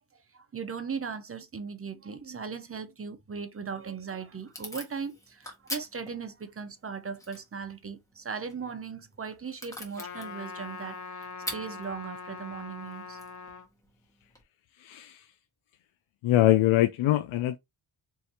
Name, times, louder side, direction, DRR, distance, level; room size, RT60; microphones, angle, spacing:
voice 1, 0.0-13.2, right 6 dB, 30° right, 0.8 m, -38 dB
Packing tape duct tape / Tearing, 3.6-14.4, left 1 dB, 5° left, 1.5 m, -46 dB
Trumpet, 10.0-13.7, left 4 dB, 35° left, 0.8 m, -42 dB
voice 2, 14.8-15.2 16.2-17.6, left 14 dB, 75° left, 0.6 m, -23 dB
4.6 x 3.1 x 2.9 m
cardioid pair, 105°, 49 cm